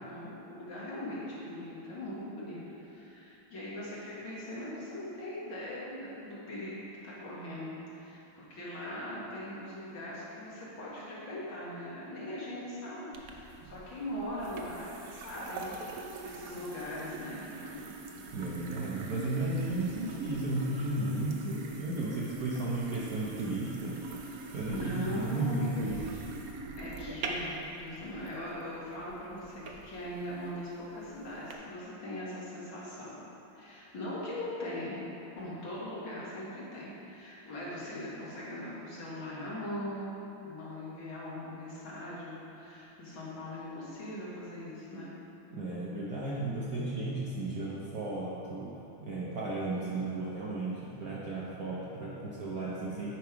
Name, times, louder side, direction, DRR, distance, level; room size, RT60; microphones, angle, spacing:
voice 1, 0.0-6.8 7.0-15.9 16.2-17.9 24.7-25.7 26.8-33.1 33.6-35.1 35.3-40.1 40.4-45.1, left 1 dB, 65° left, -8 dB, 2.6 m, -40 dB
sound 1, 13.1-31.5, right 3 dB, 70° right, 0.8 m, -44 dB
voice 2, 18.3-24.2 24.5-26.1 45.5-48.7 49.0-53.1, right 2 dB, 55° right, -6 dB, 1.1 m, -34 dB
9.5 x 5.4 x 4.6 m, 2.9 s
omnidirectional pair, 2.4 m